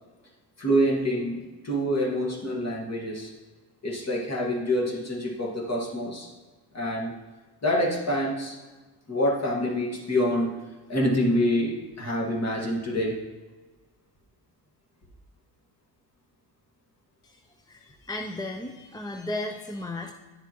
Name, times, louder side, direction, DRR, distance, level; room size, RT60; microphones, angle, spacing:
voice 1, 0.6-1.4 1.6-3.3 3.8-6.3 6.7-7.1 7.6-8.6 9.1-10.6 10.9-13.2, equal, 35° left, 0 dB, 1.8 m, -26 dB
voice 2, 17.7-20.1, left 2 dB, 10° left, 3 dB, 0.4 m, -35 dB
9.9 x 6.9 x 3.0 m, 1.3 s
cardioid pair, 95°, 44 cm